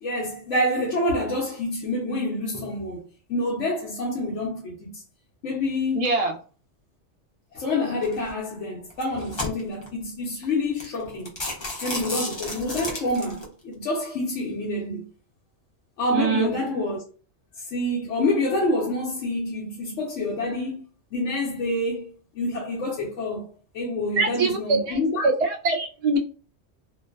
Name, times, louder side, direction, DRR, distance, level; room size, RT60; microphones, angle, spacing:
voice 1, 0.0-3.0 3.3-5.0 5.4-6.1 7.5-11.3 11.8-15.0 16.0-17.0 17.6-20.8 21.1-23.5 23.7-25.3, left 1 dB, 85° left, 1.0 m, -27 dB
voice 2, 5.9-6.3 16.1-16.5 24.2-25.0 25.2-26.2, right 3 dB, 80° right, 0.3 m, -23 dB
sound 1, 8.0-8.3 8.9-9.9 10.4-10.5 10.8-11.0 11.3-13.4, left 2 dB, 40° left, 0.4 m, -32 dB
2.5 x 2.2 x 2.3 m
omnidirectional pair, 1.2 m